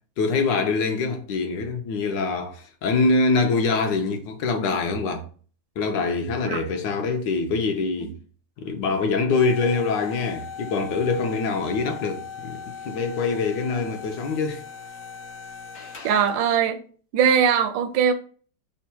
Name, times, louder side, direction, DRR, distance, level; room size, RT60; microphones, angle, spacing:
voice 1, 0.2-5.2 5.8-8.1 8.6-14.6, left 4 dB, 80° left, 1.3 m, -24 dB
sound 1, 9.3-16.5, left 6 dB, 60° left, 0.7 m, -39 dB
voice 2, 16.0-16.8 17.1-18.1, right 7 dB, 80° right, 1.3 m, -20 dB
3.6 x 2.3 x 4.2 m
omnidirectional pair, 2.0 m